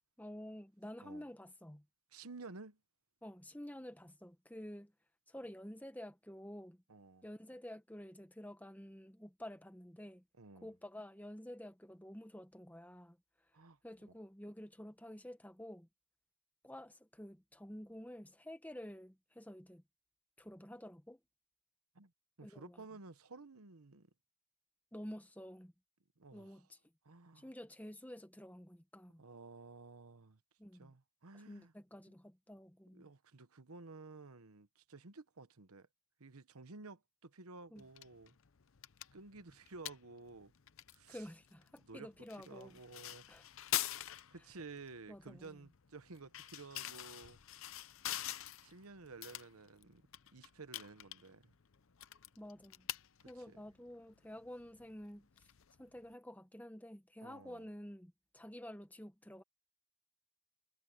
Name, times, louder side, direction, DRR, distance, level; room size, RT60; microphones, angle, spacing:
voice 1, 0.2-1.8 3.2-4.9 5.3-6.8 7.2-10.2 10.6-13.2 13.8-15.9 16.6-19.8 20.4-21.2 22.4-22.8 24.9-25.7 26.3-26.8 27.4-29.2 30.6-30.9 31.4-33.1 37.7-37.8 41.1-42.8 43.3-43.5 45.1-45.5 52.4-52.9 53.2-55.5 55.8-59.4, equal, 5° left, 1.1 m, -50 dB
voice 2, 2.1-2.8 6.9-7.2 10.4-10.7 13.5-13.8 21.9-22.1 22.4-24.1 26.2-26.6 27.0-27.5 29.2-30.4 30.8-31.7 32.9-35.9 36.2-38.3 39.1-40.5 40.9-41.2 41.9-42.1 42.5-43.3 44.3-47.7 48.6-50.0 50.3-51.5 53.3-53.6 57.2-57.7, right 3 dB, 80° right, 1.1 m, -53 dB
sound 1, 37.8-56.1, left 13 dB, 65° left, 0.7 m, -46 dB
head